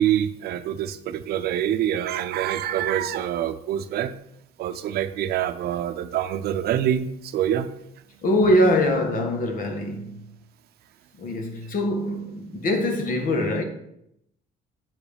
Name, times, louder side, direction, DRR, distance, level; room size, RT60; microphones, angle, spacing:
voice 1, 0.0-4.2 4.6-7.7, right 10 dB, 70° right, 0.6 m, -25 dB
voice 2, 8.2-10.3 11.1-13.6, left 1 dB, 55° left, 1.5 m, -23 dB
7.9 x 4.8 x 5.2 m
cardioid pair, 110°, 17 cm